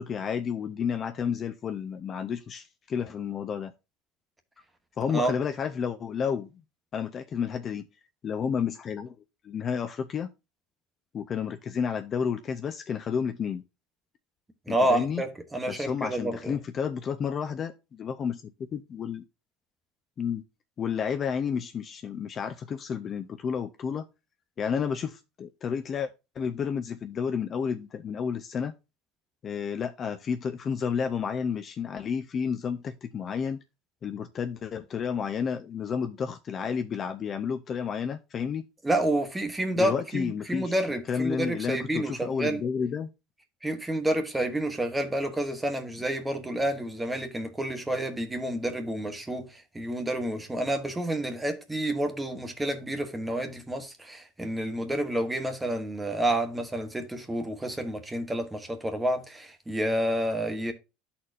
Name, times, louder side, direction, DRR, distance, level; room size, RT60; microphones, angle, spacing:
voice 1, 0.0-3.7 5.0-6.5 6.9-7.9 8.2-9.1 9.4-10.3 11.1-13.6 14.7-15.2 15.7-19.2 20.2-20.4 20.8-24.0 24.6-28.7 29.4-33.6 34.0-38.6 39.8-40.7 41.1-43.1, left 7 dB, 30° left, 0.5 m, -31 dB
voice 2, 14.7-16.5 38.8-42.6 43.6-60.7, right 1 dB, 10° right, 1.1 m, -29 dB
12.5 x 4.2 x 2.5 m
supercardioid pair, 140°, 0 cm